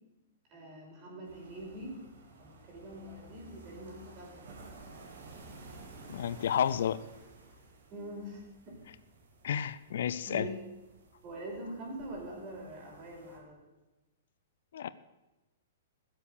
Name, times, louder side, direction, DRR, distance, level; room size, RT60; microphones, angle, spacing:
voice 1, 0.5-2.0 2.4-4.6 7.9-8.8 10.2-10.6 11.2-13.6, right 1 dB, 30° right, -1 dB, 5.0 m, -44 dB
sound 1, 1.2-13.4, right 3 dB, 75° right, 2.9 m, -54 dB
voice 2, 6.1-7.0 9.4-10.5 14.7-14.9, left 9 dB, 70° left, 16 dB, 0.5 m, -31 dB
16.0 x 7.6 x 6.7 m, 1.0 s
hypercardioid pair, 150°, 0 cm